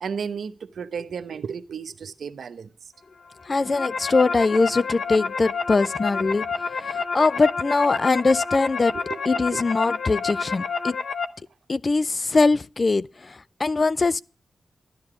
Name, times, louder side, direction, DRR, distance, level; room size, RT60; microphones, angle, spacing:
voice 1, 0.0-2.7 6.9-7.0 8.9-9.2 9.5-9.6, right 6 dB, 80° right, 0.8 m, -33 dB
sound 1, 3.4-11.3, left 5 dB, 70° left, 0.9 m, -29 dB
voice 2, 3.5-6.5 6.7-9.0 9.3-11.0 11.7-14.2, left 3 dB, 45° left, 0.5 m, -22 dB
13.0 x 9.6 x 4.9 m
cardioid pair, 50°, 0 cm